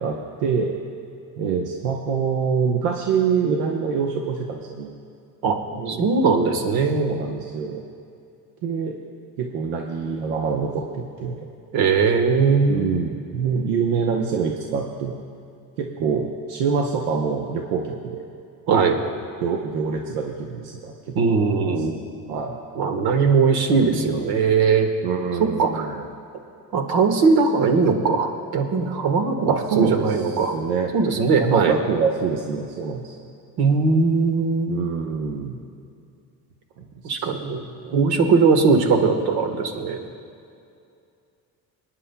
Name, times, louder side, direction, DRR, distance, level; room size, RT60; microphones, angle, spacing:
voice 1, 0.0-0.7 1.4-4.9 5.7-6.1 6.9-7.8 8.6-8.9 9.4-11.5 12.7-15.2 15.8-18.2 19.4-21.9 22.3-22.5 23.8-24.2 25.0-26.0 29.5-30.9 31.4-33.3 34.7-35.6 36.8-37.3 37.8-38.0, right 6 dB, 85° right, 1 dB, 0.9 m, -26 dB
voice 2, 5.9-7.1 11.7-12.9 18.7-19.0 21.1-21.9 22.7-24.9 25.4-26.0 26.7-30.6 30.9-31.8 33.6-34.8 37.0-37.6 37.9-40.0, right 4 dB, 65° right, 6 dB, 1.4 m, -20 dB
25.5 x 9.8 x 2.3 m, 2.5 s
supercardioid pair, 90°, 40 cm